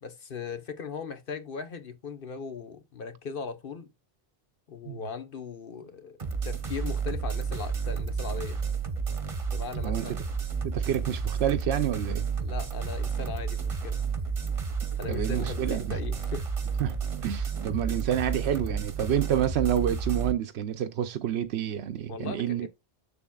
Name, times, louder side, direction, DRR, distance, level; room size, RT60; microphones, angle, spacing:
voice 1, 0.0-3.9 4.7-6.2 6.4-8.6 9.5-10.1 12.4-14.0 15.0-16.5 22.1-22.7, left 5 dB, 55° left, 1.3 m, -38 dB
sound 1, 6.2-20.3, right 5 dB, 35° right, 1.0 m, -31 dB
voice 2, 9.7-10.2 10.6-12.3 15.1-16.0 16.8-17.0 17.2-22.7, right 10 dB, 80° right, 0.9 m, -28 dB
7.1 x 7.0 x 2.3 m
omnidirectional pair, 1.1 m